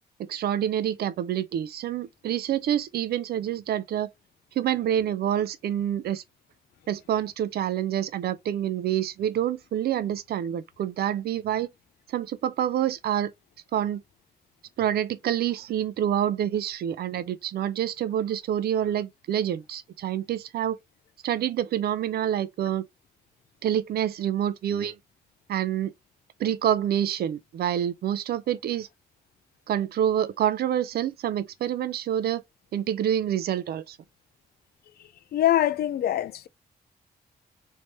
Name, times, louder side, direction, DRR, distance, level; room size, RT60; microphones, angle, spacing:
voice 1, 0.3-4.1 4.6-6.2 6.9-11.7 12.1-13.3 13.7-14.0 14.8-20.8 21.2-22.8 23.6-25.0 25.5-25.9 26.4-28.9 29.7-32.4 32.7-34.0, right 10 dB, 75° right, 0.5 m, -27 dB
voice 2, 35.3-36.5, left 12 dB, 75° left, 0.4 m, -23 dB
3.2 x 2.7 x 3.1 m
cardioid pair, 90°, 16 cm